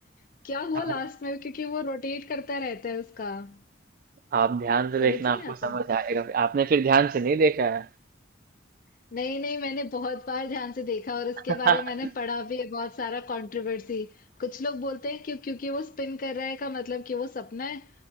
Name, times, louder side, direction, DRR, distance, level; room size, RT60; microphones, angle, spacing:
voice 1, 0.4-3.6 5.0-5.8 9.1-17.9, left 3 dB, 45° left, 0.4 m, -32 dB
voice 2, 4.3-7.9 11.7-11.8, right 5 dB, 50° right, 0.3 m, -23 dB
3.7 x 2.3 x 4.1 m
head